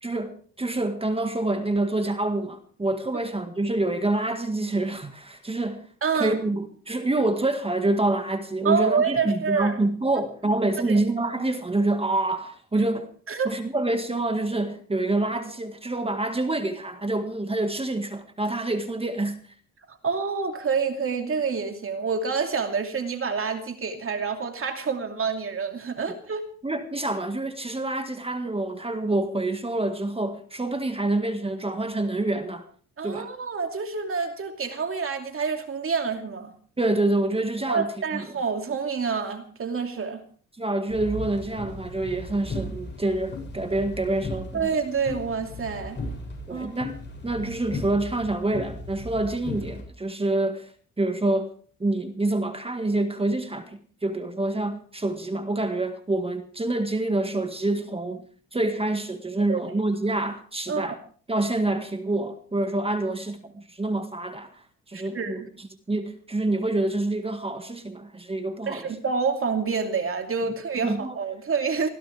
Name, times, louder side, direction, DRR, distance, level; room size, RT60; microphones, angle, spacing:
voice 1, 0.0-5.9 6.1-13.1 13.5-19.4 26.6-32.7 33.0-33.3 36.8-38.2 40.6-44.7 46.5-46.9 47.2-50.7 51.0-51.5 51.8-58.2 58.5-61.0 61.3-64.6 64.9-68.9 70.8-71.2, right 2 dB, 20° right, 1.8 m, -27 dB
voice 2, 6.0-6.4 8.6-9.8 10.9-11.0 13.3-13.5 19.9-26.4 33.0-36.5 37.7-40.2 44.5-46.0 46.5-46.7 59.5-59.6 60.7-61.0 64.9-65.5 68.7-71.9, right 5 dB, 45° right, 2.6 m, -27 dB
sound 1, 40.9-49.8, left 2 dB, 35° left, 7.3 m, -36 dB
24.5 x 16.0 x 3.5 m
cardioid pair, 90°, 30 cm